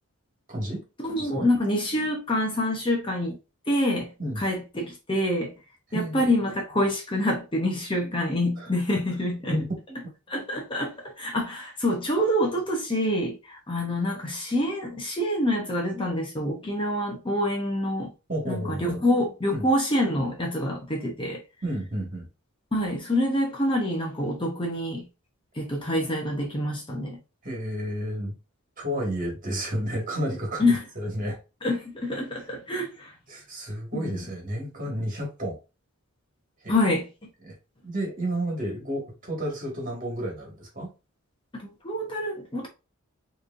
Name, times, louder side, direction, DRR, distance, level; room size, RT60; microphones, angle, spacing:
voice 1, 0.5-0.8 1.2-1.5 4.2-4.4 5.9-6.3 8.6-8.7 9.5-9.8 18.3-19.0 19.5-19.7 21.6-22.3 27.4-28.4 28.8-31.4 32.4-32.5 33.3-35.6 36.6-36.8 37.4-37.6 37.8-40.9, right 1 dB, 35° right, 1.9 m, -31 dB
voice 2, 1.0-3.4 3.7-4.1 4.4-5.5 5.9-9.5 10.3-18.1 18.5-21.4 22.7-25.0 25.6-27.2 30.6-30.8 31.6-33.1 33.9-34.1 36.7-37.1 41.8-42.7, left 1 dB, 25° left, 0.8 m, -26 dB
4.7 x 3.1 x 2.6 m
head